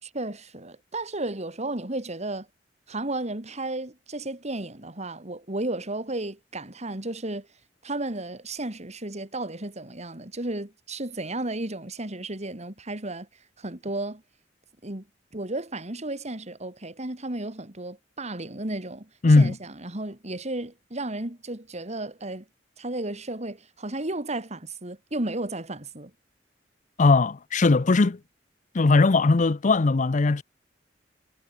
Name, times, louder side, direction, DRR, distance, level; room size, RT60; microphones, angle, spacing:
voice 1, 0.0-2.5 2.9-7.5 7.8-13.3 13.6-14.2 14.8-15.0 15.3-19.1 19.4-22.4 22.8-26.1, right 2 dB, 40° right, 2.9 m, -33 dB
voice 2, 19.2-19.5 27.0-28.2 28.7-30.4, left 3 dB, 45° left, 0.6 m, -19 dB
head